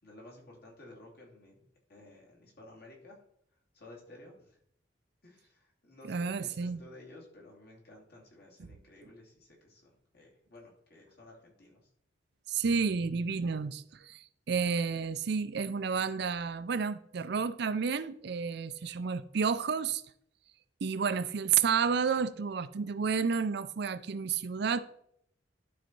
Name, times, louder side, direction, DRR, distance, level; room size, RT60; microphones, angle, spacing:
voice 1, 0.0-1.6 1.9-3.2 3.7-4.6 5.2-11.9, left 2 dB, 60° left, 2.8 m, -54 dB
voice 2, 6.1-6.8 8.6-8.7 12.5-20.0 20.8-24.8, right 6 dB, 65° right, 0.5 m, -31 dB
12.0 x 4.1 x 4.6 m
head